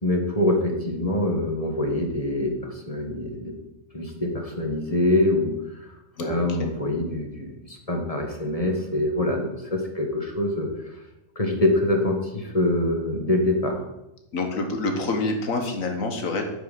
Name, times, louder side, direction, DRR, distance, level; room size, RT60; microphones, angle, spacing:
voice 1, 0.0-3.5 3.9-5.9 6.2-10.7 11.3-13.8, left 1 dB, 25° left, 2 dB, 1.4 m, -25 dB
voice 2, 6.2-6.7 14.3-16.4, left 3 dB, 80° left, 4 dB, 1.7 m, -27 dB
8.4 x 5.9 x 6.8 m, 0.92 s
omnidirectional pair, 1.4 m